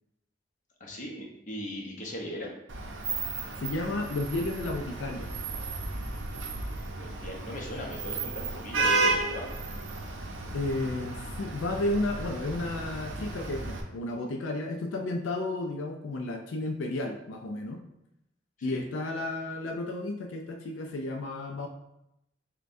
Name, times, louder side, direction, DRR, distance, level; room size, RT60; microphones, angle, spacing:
voice 1, 0.8-2.5 7.0-9.5 18.6-18.8, left 1 dB, 45° left, -1 dB, 0.8 m, -38 dB
Vehicle horn car horn honking / Traffic noise roadway noise, 2.7-13.8, right 3 dB, 85° right, 0.6 m, -33 dB
voice 2, 3.6-5.3 10.5-17.8 18.6-21.7, left 2 dB, 90° left, 3 dB, 0.4 m, -32 dB
6.5 x 2.2 x 2.6 m, 0.84 s
head